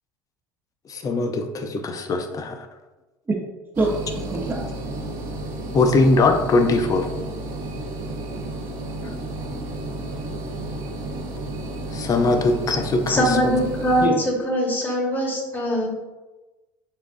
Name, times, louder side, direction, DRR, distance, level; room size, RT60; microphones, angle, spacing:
voice 1, 0.9-2.7 5.7-7.1 11.9-13.6, left 3 dB, 35° left, 6 dB, 0.6 m, -21 dB
sound 1, 3.7-14.1, right 1 dB, 60° right, 1.0 m, -32 dB
voice 2, 3.8-4.6 14.0-14.1, right 2 dB, 20° right, -3 dB, 0.7 m, -24 dB
voice 3, 13.1-15.9, equal, 20° left, -3 dB, 1.5 m, -22 dB
6.7 x 2.4 x 2.6 m, 1.2 s
hypercardioid pair, 75°, 10 cm